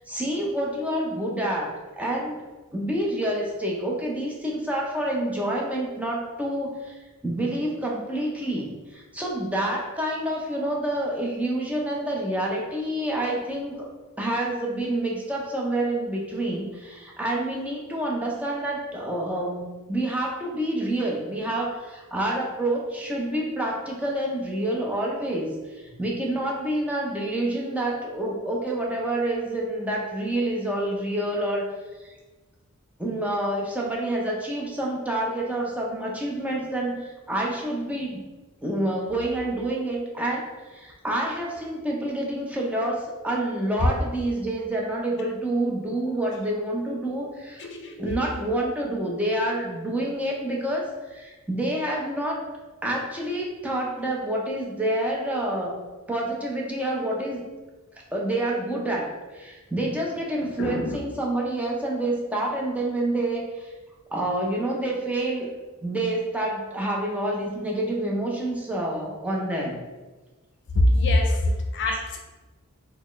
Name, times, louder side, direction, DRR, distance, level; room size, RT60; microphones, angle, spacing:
voice 1, 0.0-2.4 2.7-7.0 7.2-13.9 14.2-25.5 25.8-31.7 33.0-38.2 38.6-40.4 40.7-47.7 48.0-52.4 52.8-57.4 58.1-59.1 59.3-63.7 64.1-65.5 65.8-69.8 71.9-72.0, right 1 dB, 5° right, -3 dB, 0.5 m, -28 dB
voice 2, 47.6-47.9 60.4-61.0 70.7-72.2, left 1 dB, 55° left, 2 dB, 0.5 m, -23 dB
4.0 x 2.3 x 3.1 m, 1.2 s
head